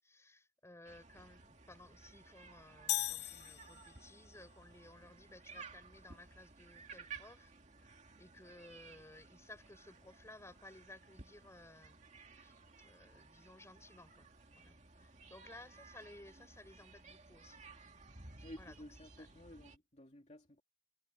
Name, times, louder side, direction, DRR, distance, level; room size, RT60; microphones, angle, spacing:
voice 1, 0.0-7.5 7.8-12.0 12.3-14.3 14.5-17.6 18.4-19.3, left 1 dB, 15° left, 5.1 m, -58 dB
sound 1, 0.9-19.8, right 4 dB, 40° right, 2.3 m, -57 dB
sound 2, 2.9-4.3, left 14 dB, 65° left, 0.6 m, -38 dB
voice 2, 18.4-20.6, left 1 dB, 40° left, 2.9 m, -53 dB
head